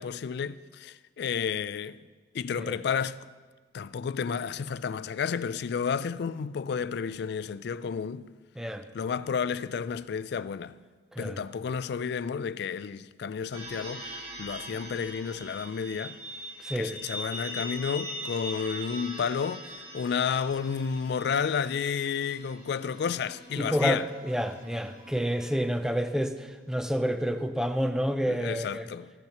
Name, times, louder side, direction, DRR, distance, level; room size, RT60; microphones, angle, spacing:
voice 1, 0.0-2.0 2.3-3.2 3.7-8.3 8.9-10.8 11.2-16.2 16.8-19.7 19.9-24.0 28.3-29.1, left 6 dB, 60° left, 0.3 m, -31 dB
voice 2, 11.1-11.4 16.6-16.9 23.6-28.9, equal, 5° right, 0.5 m, -29 dB
sound 1, 13.5-26.1, equal, 50° right, 3.5 m, -42 dB
15.0 x 12.0 x 3.0 m
head